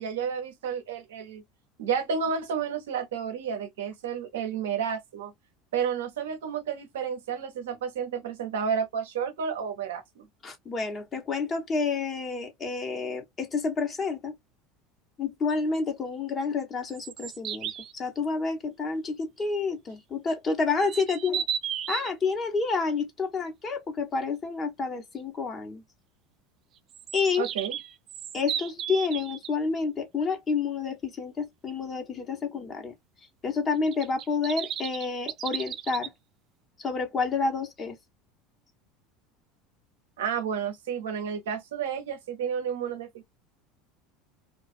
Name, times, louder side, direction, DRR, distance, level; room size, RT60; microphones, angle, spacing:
voice 1, 0.0-1.4 1.8-5.3 5.7-10.3 27.4-27.8 40.2-43.1, right 7 dB, 80° right, 0.7 m, -31 dB
voice 2, 10.4-14.3 15.2-21.4 21.9-25.8 27.1-27.4 28.3-32.9 33.4-36.1 36.8-38.0, left 4 dB, 35° left, 1.1 m, -29 dB
sound 1, 16.8-17.9 20.8-22.1 26.9-29.5 33.9-36.1, right 9 dB, 50° right, 0.3 m, -34 dB
2.4 x 2.4 x 2.3 m
hypercardioid pair, 80°, 0 cm